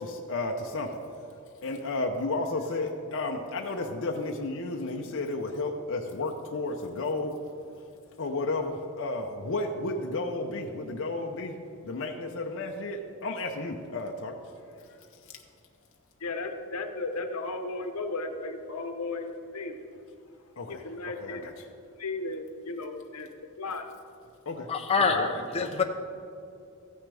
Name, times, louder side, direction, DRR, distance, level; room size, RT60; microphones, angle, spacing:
voice 1, 0.0-1.3 1.6-7.4 8.2-11.6 11.8-14.5 14.8-14.9 15.2-15.3 20.6-21.5 24.5-24.7 25.0-25.3 25.6-25.8, left 2 dB, 60° left, 1 dB, 0.7 m, -33 dB
voice 2, 16.2-19.9 20.7-21.5 22.0-23.3 23.6-23.9, left 3 dB, 90° left, 6 dB, 0.9 m, -35 dB
voice 3, 24.7-25.8, left 4 dB, 25° left, 3 dB, 0.7 m, -26 dB
14.5 x 9.6 x 3.4 m, 2.6 s
head